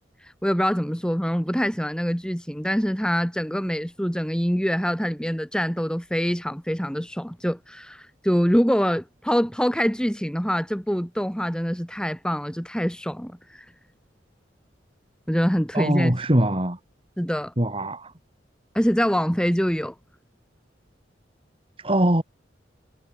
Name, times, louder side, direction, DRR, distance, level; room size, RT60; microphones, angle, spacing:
voice 1, 0.4-13.6 15.3-16.1 17.2-17.5 18.7-19.9, equal, 5° left, 4.4 m, -24 dB
voice 2, 15.7-16.8 17.6-18.0 21.8-22.2, right 1 dB, 30° right, 2.9 m, -21 dB
head